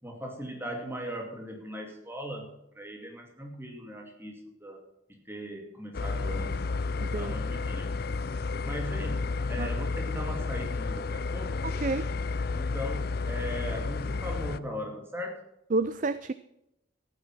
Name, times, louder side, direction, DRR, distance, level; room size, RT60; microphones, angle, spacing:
voice 1, 0.0-4.8 5.1-6.6 7.2-8.0 8.6-11.6 12.5-15.4, equal, 10° right, 2 dB, 2.4 m, -39 dB
sound 1, 5.9-14.6, left 4 dB, 50° left, 0.5 m, -31 dB
voice 2, 7.0-7.3 9.6-9.7 11.6-12.1 15.7-16.3, right 3 dB, 40° right, 14 dB, 0.4 m, -29 dB
14.0 x 9.6 x 6.0 m, 0.82 s
head